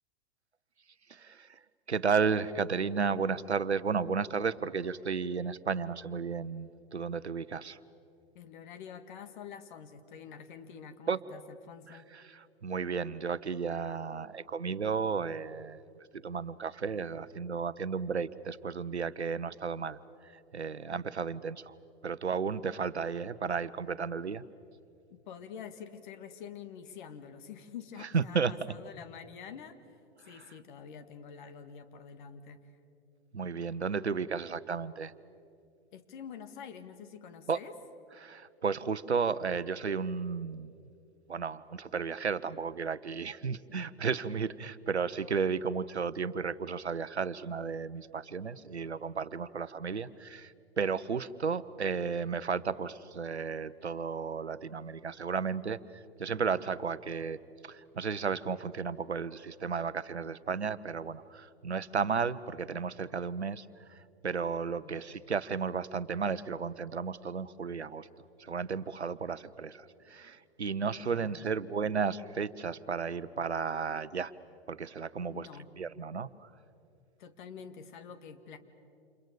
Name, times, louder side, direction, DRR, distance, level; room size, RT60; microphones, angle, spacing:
voice 1, 1.1-1.6 1.9-7.8 11.1-11.2 11.9-15.8 16.1-20.0 20.5-21.7 22.0-24.4 28.1-28.5 33.3-35.1 37.5-37.6 38.2-40.7 41.3-57.4 57.6-64.0 64.2-68.1 68.4-74.3 74.7-75.5 75.8-76.5, right 5 dB, 85° right, 15 dB, 1.0 m, -33 dB
voice 2, 8.3-12.1 25.1-32.6 35.9-37.7 64.8-65.0 71.1-71.6 75.3-75.7 77.2-78.6, left 7 dB, 50° left, 9 dB, 2.1 m, -47 dB
30.0 x 28.0 x 6.9 m, 2.5 s
figure-of-eight pair, 110°, 32 cm